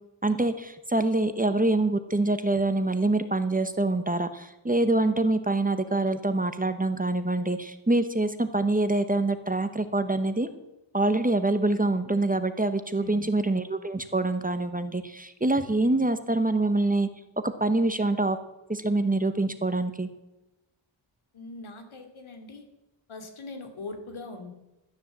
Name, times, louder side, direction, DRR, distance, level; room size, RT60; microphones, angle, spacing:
voice 1, 0.2-10.5 10.9-17.1 17.4-18.4 18.7-20.1, right 2 dB, 15° right, 10 dB, 1.0 m, -25 dB
voice 2, 12.9-13.3 21.3-22.7 23.1-24.5, left 3 dB, 80° left, 5 dB, 2.7 m, -41 dB
13.0 x 10.5 x 7.3 m, 0.99 s
wide cardioid pair, 100°, 48 cm